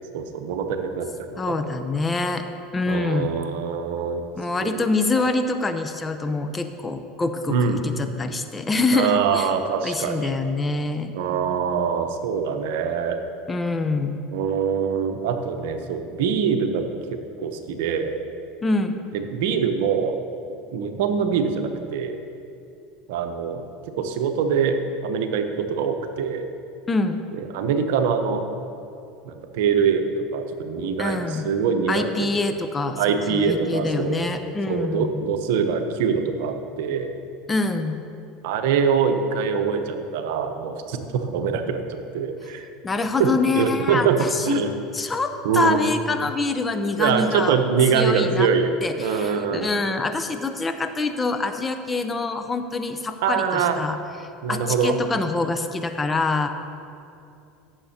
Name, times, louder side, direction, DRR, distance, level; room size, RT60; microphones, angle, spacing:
voice 1, 0.1-1.7 2.9-4.3 4.6-4.9 5.1-5.2 7.5-7.8 8.9-10.3 11.1-13.2 14.3-16.9 17.4-18.2 19.1-20.2 20.7-22.2 23.1-23.6 24.0-24.8 25.0-26.5 27.3-28.4 29.3-32.3 33.0-34.2 34.7-37.1 38.4-42.7 43.2-44.7 45.4-45.8 47.0-48.7 49.0-49.7 53.2-53.8 54.4-55.0, right 6 dB, 75° right, 7 dB, 0.8 m, -24 dB
voice 2, 1.4-2.4 2.7-3.3 4.3-9.5 9.8-11.1 13.5-14.2 18.6-19.0 26.9-27.2 31.0-31.5 31.9-33.0 33.3-35.2 37.5-38.0 42.8-44.6 44.9-47.6 47.9-48.5 48.8-54.0 54.5-56.5, left 3 dB, 20° left, 7 dB, 0.7 m, -25 dB
15.5 x 7.3 x 2.8 m, 2.6 s
hypercardioid pair, 90°, 0 cm